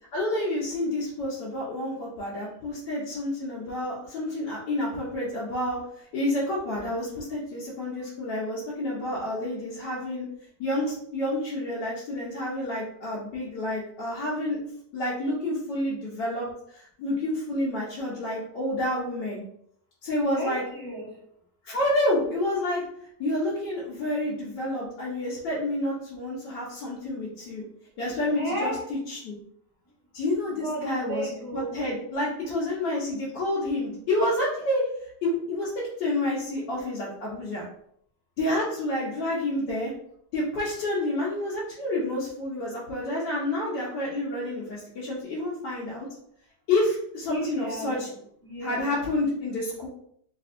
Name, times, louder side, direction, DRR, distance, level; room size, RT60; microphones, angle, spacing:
voice 1, 0.1-10.3 10.6-14.6 14.9-19.4 20.0-20.6 21.6-22.8 23.2-27.6 28.0-28.7 29.1-29.4 30.1-35.7 36.0-37.7 38.4-39.9 40.3-46.1 46.7-48.1 48.6-49.9, left 1 dB, 80° left, -7 dB, 1.4 m, -29 dB
voice 2, 20.3-21.2 28.3-28.9 30.6-31.9 47.3-48.9, equal, 20° left, -7 dB, 0.6 m, -34 dB
3.4 x 2.5 x 2.4 m, 0.68 s
omnidirectional pair, 1.8 m